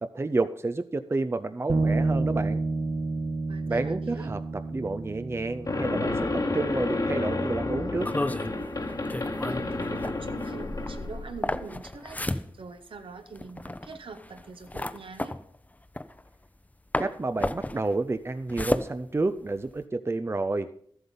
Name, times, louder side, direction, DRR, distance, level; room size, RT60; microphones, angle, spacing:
voice 1, 0.0-2.6 3.7-8.1 17.0-20.7, right 3 dB, 30° right, 10 dB, 0.5 m, -30 dB
sound 1, 1.7-11.2, right 3 dB, 55° right, 1.1 m, -32 dB
voice 2, 3.5-4.3 9.4-15.4, right 4 dB, 75° right, 7 dB, 1.1 m, -43 dB
sound 2, 5.7-11.7, left 2 dB, 40° left, 1.4 m, -30 dB
sound 3, 8.0-16.7 16.9-19.8, left 1 dB, 15° left, 0.6 m, -33 dB
13.0 x 7.9 x 5.4 m, 0.63 s
cardioid pair, 60°, 9 cm